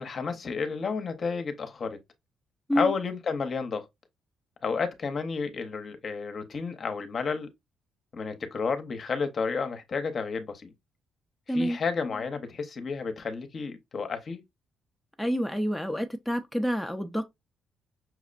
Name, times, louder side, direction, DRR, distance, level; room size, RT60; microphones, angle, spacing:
voice 1, 0.0-2.0 2.7-3.9 4.6-7.5 8.1-10.7 11.5-14.4, left 5 dB, 45° left, 0.7 m, -31 dB
voice 2, 15.2-17.2, equal, ahead, 0.5 m, -28 dB
5.8 x 2.1 x 2.4 m
cardioid pair, 90°, 0 cm